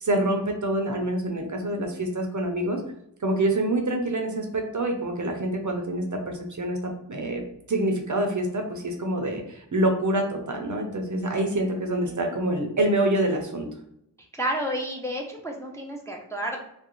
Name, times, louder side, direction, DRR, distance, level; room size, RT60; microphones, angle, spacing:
voice 1, 0.0-2.8 3.2-6.8 7.1-7.4 7.7-13.7, right 1 dB, 45° right, 3 dB, 0.5 m, -26 dB
voice 2, 14.4-16.6, equal, 5° left, 0 dB, 0.4 m, -31 dB
2.4 x 2.0 x 2.9 m, 0.76 s
wide cardioid pair, 45°, 42 cm